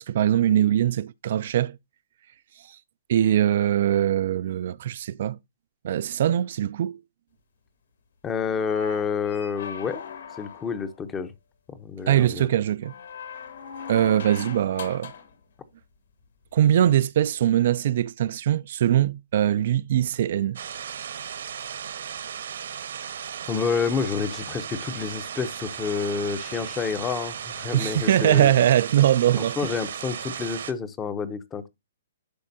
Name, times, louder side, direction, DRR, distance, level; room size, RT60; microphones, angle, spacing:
voice 1, 0.0-1.8 2.6-2.8 3.1-5.4 5.8-7.0 12.1-12.9 13.9-15.1 16.5-20.6 27.7-29.7, right 11 dB, 45° right, 0.3 m, -22 dB
voice 2, 8.2-10.0 10.4-11.3 11.7-12.5 23.5-28.5 29.4-31.7, left 6 dB, 10° left, 0.7 m, -29 dB
sound 1, 8.5-11.0 12.8-15.3 17.0-17.1, left 6 dB, 65° left, 2.4 m, -39 dB
sound 2, 20.6-30.7, right 8 dB, 65° right, 1.1 m, -36 dB
11.5 x 4.4 x 2.7 m
hypercardioid pair, 165°, 0 cm